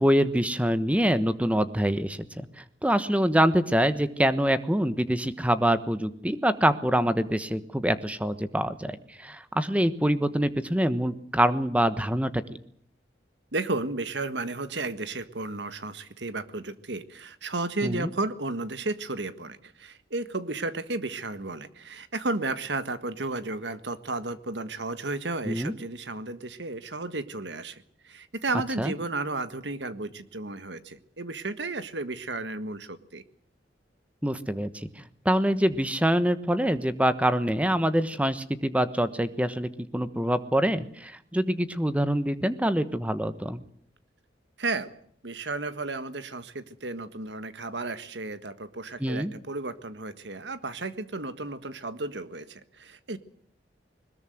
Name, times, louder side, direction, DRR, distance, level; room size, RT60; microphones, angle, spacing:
voice 1, 0.0-12.4 17.8-18.1 25.4-25.7 28.8-28.9 34.2-34.9 35.2-43.6 49.0-49.3, equal, 10° right, 12 dB, 1.2 m, -25 dB
voice 2, 13.5-33.2 44.6-44.9 45.2-53.2, right 2 dB, 80° right, 12 dB, 1.6 m, -33 dB
21.5 x 20.0 x 7.9 m, 0.64 s
head